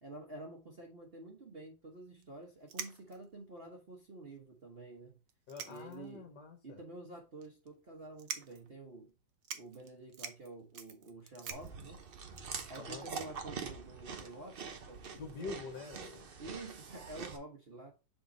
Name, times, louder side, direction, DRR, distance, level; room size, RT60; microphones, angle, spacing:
voice 1, 0.0-5.2 5.6-6.3 6.6-9.1 9.5-12.0 12.7-15.6 16.4-17.9, right 2 dB, 40° right, 1.0 m, -49 dB
sound 1, 2.2-2.3 2.7-3.3 4.0-4.1 4.4-4.5 5.3-6.2 6.6-6.7 7.4-7.7 8.2-8.7 9.1-9.2 9.4-13.1, right 7 dB, 60° right, 0.9 m, -46 dB
voice 2, 5.5-6.8 12.8-13.1 15.2-16.3, left 4 dB, 60° left, 1.6 m, -46 dB
Chewing mastication, 11.5-17.4, right 5 dB, 85° right, 0.5 m, -45 dB
6.8 x 3.7 x 3.9 m
omnidirectional pair, 2.2 m